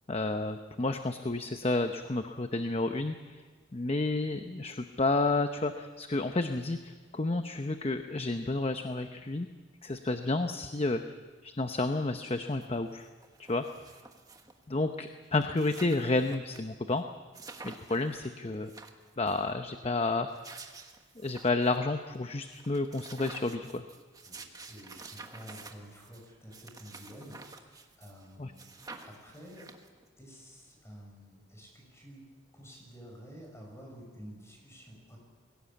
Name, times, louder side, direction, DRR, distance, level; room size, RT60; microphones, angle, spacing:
voice 1, 0.1-3.4 3.7-9.5 9.8-11.0 11.4-13.1 13.4-13.6 14.7-17.0 17.6-18.7 19.2-20.3 21.2-23.8 28.4-28.5, left 2 dB, 30° left, 7 dB, 0.8 m, -31 dB
sound 1, 12.6-12.7 13.0-14.6 15.1-15.2 15.3-16.6 16.9-17.0 17.3-18.1 18.5-19.4 20.1-21.8 22.1-22.2 22.5-28.3 28.6-30.1, right 3 dB, 20° right, 1.4 m, -49 dB
voice 2, 24.3-28.8 29.0-29.7 30.2-35.2, equal, 15° left, 0 dB, 5.9 m, -50 dB
22.0 x 17.5 x 8.5 m, 1.4 s
head